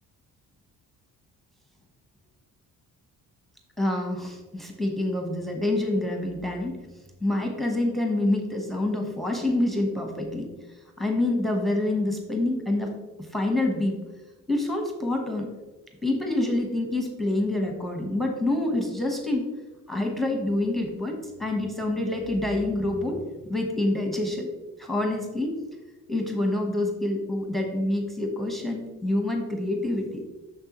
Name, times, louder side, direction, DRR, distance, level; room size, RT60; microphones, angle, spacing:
voice 1, 3.8-6.9 7.2-10.5 11.0-14.0 14.5-15.5 16.0-19.5 19.9-23.2 23.5-24.5 24.8-25.6 26.1-30.2, left 1 dB, ahead, 2 dB, 1.0 m, -27 dB
6.7 x 6.5 x 2.9 m, 1.2 s
cardioid pair, 120°, 34 cm